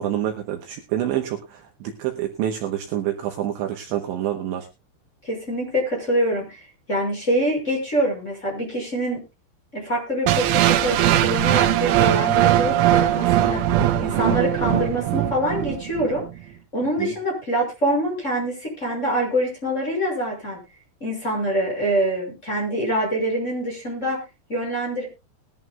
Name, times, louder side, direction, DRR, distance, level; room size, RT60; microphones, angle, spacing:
voice 1, 0.0-4.7 17.0-17.1, right 11 dB, 75° right, 3 dB, 3.0 m, -27 dB
voice 2, 5.2-6.6 6.9-9.2 9.7-13.7 14.0-16.2 16.7-20.6 21.0-24.2 24.5-25.1, right 1 dB, 15° left, -1 dB, 6.0 m, -25 dB
sound 1, 10.3-16.3, right 13 dB, 90° right, 3.8 m, -20 dB
20.5 x 11.0 x 2.3 m, 0.27 s
omnidirectional pair, 6.0 m